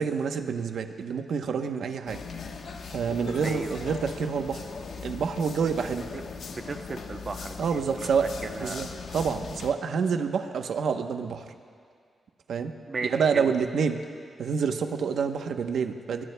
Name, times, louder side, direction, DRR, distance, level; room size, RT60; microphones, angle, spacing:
voice 1, 0.0-2.2 2.9-4.6 5.0-6.0 7.6-8.3 8.6-8.9 9.1-11.4 12.5-12.7 13.1-14.0 14.4-16.2, right 6 dB, 70° right, 6 dB, 0.9 m, -27 dB
sound 1, 2.1-9.7, left 5 dB, 70° left, 1.1 m, -39 dB
voice 2, 3.4-3.8 6.5-8.1 8.4-8.9 12.9-13.5, right 4 dB, 35° right, 6 dB, 0.8 m, -36 dB
29.0 x 21.5 x 2.3 m, 2.2 s
wide cardioid pair, 170°, 0 cm